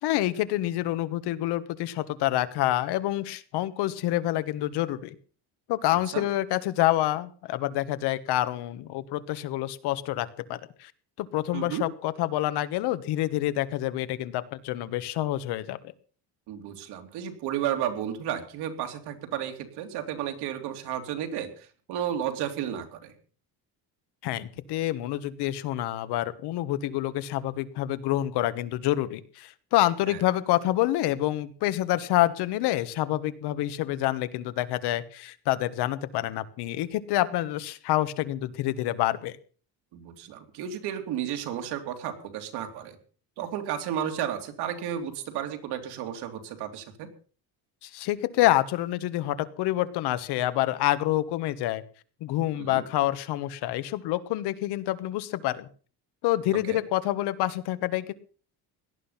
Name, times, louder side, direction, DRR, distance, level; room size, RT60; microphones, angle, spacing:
voice 1, 0.0-5.1 5.7-10.9 11.2-15.8 24.2-39.4 47.8-51.8 52.2-55.7 56.2-58.1, left 15 dB, 85° left, 13 dB, 1.5 m, -27 dB
voice 2, 11.5-11.8 16.5-23.1 30.1-30.2 39.9-43.0 43.4-47.1 52.6-52.8 56.6-56.8, right 10 dB, 80° right, 5 dB, 3.2 m, -33 dB
18.0 x 12.0 x 5.8 m, 0.42 s
cardioid pair, 175°, 39 cm